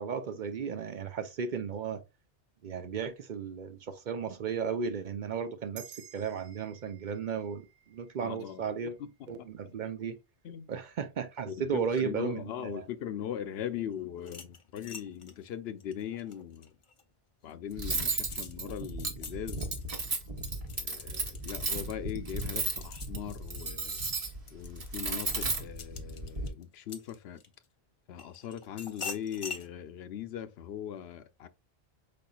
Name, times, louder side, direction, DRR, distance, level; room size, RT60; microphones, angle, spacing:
voice 1, 0.0-2.0 2.6-9.0 9.3-10.2 10.7-12.9, right 6 dB, 55° right, 0.6 m, -35 dB
sound 1, 5.7-10.5, right 9 dB, 75° right, 1.0 m, -55 dB
voice 2, 8.2-8.6 9.3-9.7 10.4-10.7 11.5-16.7 17.4-19.7 20.7-24.0 24.5-27.4 28.1-31.5, left 9 dB, 75° left, 0.8 m, -40 dB
sound 2, 14.2-17.0 17.5-27.6 28.2-29.7, left 5 dB, 40° left, 0.5 m, -46 dB
Cutlery silverware, 17.8-26.5, right 3 dB, 35° right, 0.9 m, -35 dB
5.2 x 4.2 x 2.3 m
omnidirectional pair, 1.1 m